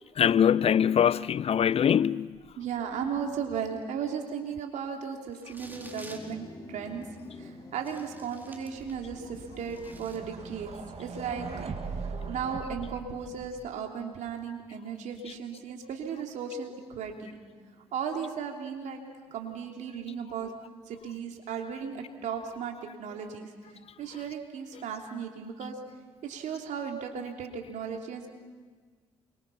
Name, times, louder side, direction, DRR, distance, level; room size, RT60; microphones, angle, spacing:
voice 1, 0.2-2.3, left 9 dB, 50° left, 0.6 m, -23 dB
voice 2, 2.6-7.0 7.4-11.5 12.3-17.4 17.9-19.0 19.3-20.5 20.9-23.5 24.0-25.7 26.2-28.3, right 7 dB, 70° right, 3.3 m, -36 dB
sound 1, 5.3-6.3 7.1-7.2 7.8-9.0 9.4-10.2, right 1 dB, 15° right, 4.4 m, -50 dB
sound 2, 5.6-10.9, left 3 dB, 25° left, 5.1 m, -48 dB
sound 3, 8.8-13.7, right 5 dB, 50° right, 2.7 m, -40 dB
28.0 x 24.0 x 5.8 m
hypercardioid pair, 50°, 13 cm